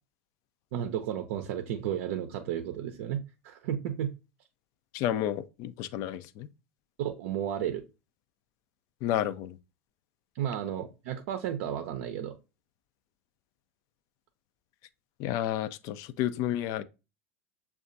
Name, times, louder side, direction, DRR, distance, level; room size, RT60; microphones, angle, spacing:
voice 1, 0.7-4.1 7.0-7.8 10.3-12.3, right 10 dB, 65° right, 0.6 m, -33 dB
voice 2, 4.9-6.5 9.0-9.6 15.2-16.8, left 11 dB, 50° left, 0.4 m, -31 dB
7.0 x 2.3 x 2.6 m
hypercardioid pair, 80°, 8 cm